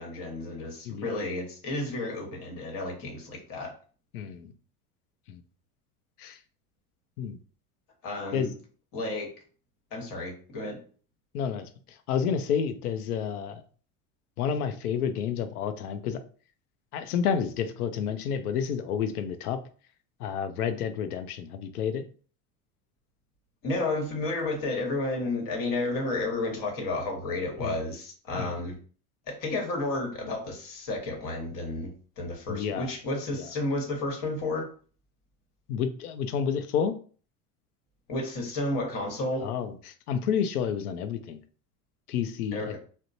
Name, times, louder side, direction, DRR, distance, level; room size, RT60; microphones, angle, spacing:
voice 1, 0.0-3.7 8.0-8.5 8.9-9.3 9.9-10.8 23.6-28.8 29.3-34.7 38.1-39.5 42.5-42.8, left 2 dB, 50° left, 2 dB, 1.1 m, -32 dB
voice 2, 4.1-4.5 5.3-5.4 6.2-6.4 7.2-7.4 8.3-8.5 11.3-13.6 14.4-16.2 16.9-19.6 20.2-22.0 27.6-27.8 28.3-28.5 32.5-32.9 33.3-33.5 35.7-36.9 39.4-41.4 42.1-42.8, left 7 dB, 90° left, 9 dB, 0.5 m, -30 dB
2.9 x 2.1 x 2.6 m, 0.41 s
hypercardioid pair, 90°, 44 cm